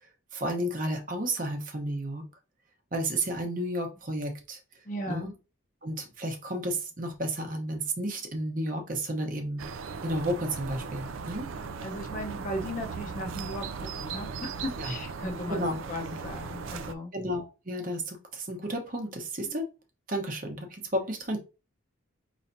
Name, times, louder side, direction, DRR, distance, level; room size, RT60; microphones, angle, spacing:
voice 1, 0.3-2.2 2.9-4.6 5.1-5.3 5.8-9.6 10.0-11.5 14.8-14.9 15.5-15.8 17.1-19.7 20.1-21.4, right 1 dB, 40° right, 3 dB, 1.0 m, -32 dB
voice 2, 4.8-5.3 11.6-17.1 19.4-19.6, left 1 dB, 35° left, 3 dB, 0.8 m, -37 dB
sound 1, 9.6-16.9, right 5 dB, 70° right, 0.4 m, -38 dB
5.5 x 3.1 x 2.6 m, 0.30 s
head